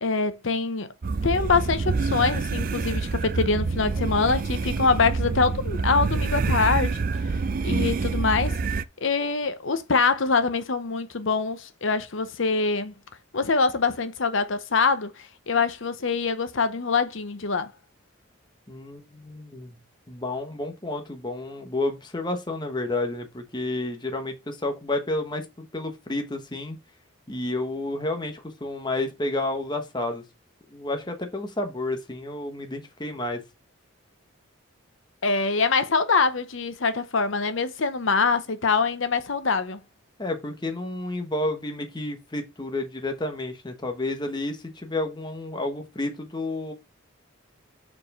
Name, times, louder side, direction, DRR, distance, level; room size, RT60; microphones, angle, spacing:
voice 1, 0.0-0.9 1.2-7.4 7.6-8.6 9.0-12.9 13.3-17.7 35.2-39.8, left 4 dB, 70° left, 0.8 m, -24 dB
sound 1, 1.0-8.8, right 4 dB, 40° right, 0.4 m, -26 dB
voice 2, 18.7-19.8 20.1-26.8 27.3-30.2 30.7-33.4 40.2-46.7, left 2 dB, 20° left, 1.1 m, -30 dB
4.8 x 4.5 x 5.4 m
head